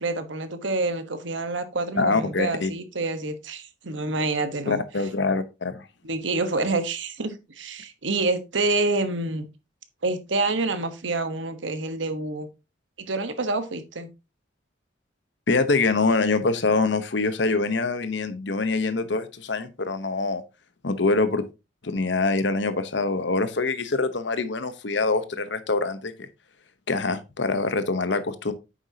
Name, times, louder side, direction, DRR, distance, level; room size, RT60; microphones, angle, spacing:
voice 1, 0.0-4.8 6.0-9.5 10.0-12.5 13.0-14.1, right 3 dB, 75° right, 1.2 m, -27 dB
voice 2, 2.0-2.7 4.7-5.8 15.5-20.4 20.8-21.4 21.8-26.3 26.9-28.5, left 3 dB, 65° left, 0.9 m, -24 dB
9.1 x 7.1 x 2.8 m
head